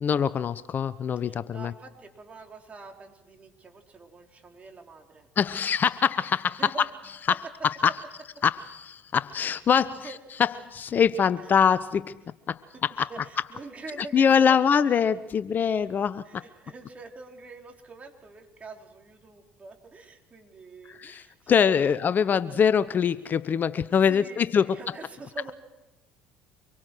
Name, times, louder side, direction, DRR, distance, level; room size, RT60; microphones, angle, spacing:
voice 1, 0.0-1.7 5.4-6.7 7.3-7.4 7.6-7.9 8.4-10.1 10.4-12.2 12.5-13.1 14.1-16.4 20.9-24.8, left 7 dB, 40° left, 16 dB, 0.8 m, -24 dB
voice 2, 1.2-5.3 6.6-6.9 8.4-8.5 9.7-10.2 12.7-14.7 16.2-22.7 24.0-25.5, right 3 dB, 30° right, 2 dB, 4.4 m, -45 dB
25.5 x 23.0 x 6.3 m, 1.0 s
hypercardioid pair, 65°, 5 cm